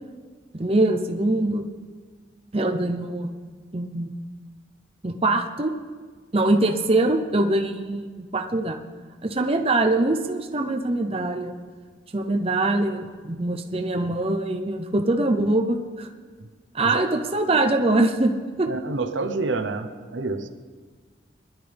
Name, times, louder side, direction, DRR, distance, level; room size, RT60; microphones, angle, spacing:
voice 1, 0.5-1.6 2.5-3.3 3.7-4.2 5.0-5.7 6.3-8.8 9.2-11.5 12.1-16.1 16.7-18.7, right 2 dB, 30° right, 4 dB, 0.7 m, -23 dB
voice 2, 18.6-20.5, right 3 dB, 80° right, 8 dB, 0.8 m, -28 dB
20.5 x 11.0 x 3.5 m, 1.5 s
head